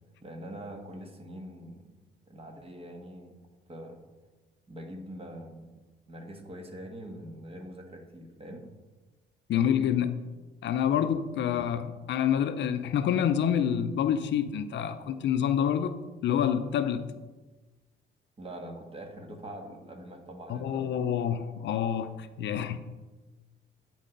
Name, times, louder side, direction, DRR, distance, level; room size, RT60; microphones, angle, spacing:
voice 1, 0.2-1.9 2.3-3.4 3.7-4.0 4.7-5.7 6.1-8.7 18.4-20.9, right 1 dB, 30° right, 1.4 m, -43 dB
voice 2, 9.5-10.2 10.6-16.0 16.2-17.1 20.5-22.8, left 9 dB, 65° left, 0.5 m, -27 dB
9.9 x 4.6 x 3.9 m
cardioid pair, 90°, 20 cm